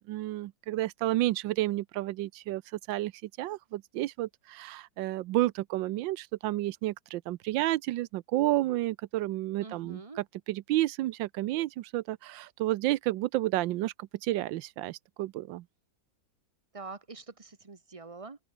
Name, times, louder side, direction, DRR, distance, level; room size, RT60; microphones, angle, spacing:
voice 1, 0.1-2.6 2.9-15.6, right 16 dB, 85° right, 1.3 m, -31 dB
voice 2, 9.6-10.2 16.7-18.4, right 4 dB, 25° right, 0.9 m, -45 dB
open air
omnidirectional pair, 2.0 m